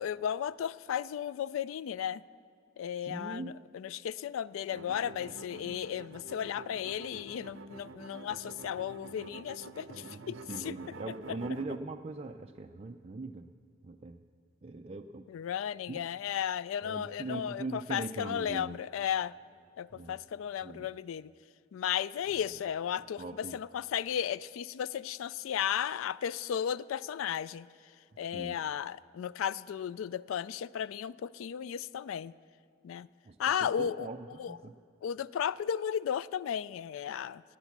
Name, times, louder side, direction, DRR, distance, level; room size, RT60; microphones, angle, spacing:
voice 1, 0.0-2.2 2.8-10.7 11.3-11.4 15.3-19.3 19.8-21.3 21.7-27.7 28.2-32.3 32.8-33.1 33.4-34.1 34.4-34.6 35.0-37.4, left 9 dB, 85° left, 19 dB, 0.3 m, -34 dB
voice 2, 3.0-3.5 9.9-13.5 13.8-14.2 14.6-15.3 15.9-16.0 16.8-18.8 19.9-20.2 20.6-20.9 23.2-23.6 28.3-28.6 33.3-33.4 33.8-34.7, right 2 dB, 30° right, 3 dB, 0.4 m, -41 dB
sound 1, 4.7-11.8, right 3 dB, 70° right, 0.6 m, -48 dB
18.5 x 9.2 x 7.3 m, 2.5 s
head